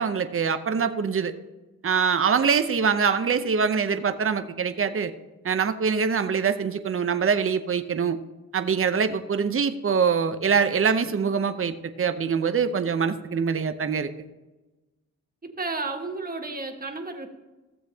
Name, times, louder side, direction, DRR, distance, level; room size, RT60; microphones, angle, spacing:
voice 1, 0.0-1.3 1.8-5.1 5.4-8.2 8.5-14.1, right 6 dB, 45° right, 9 dB, 0.7 m, -24 dB
voice 2, 15.4-17.3, right 3 dB, 30° right, 3 dB, 1.4 m, -32 dB
15.5 x 7.3 x 2.8 m, 1.1 s
cardioid pair, 70°, 30 cm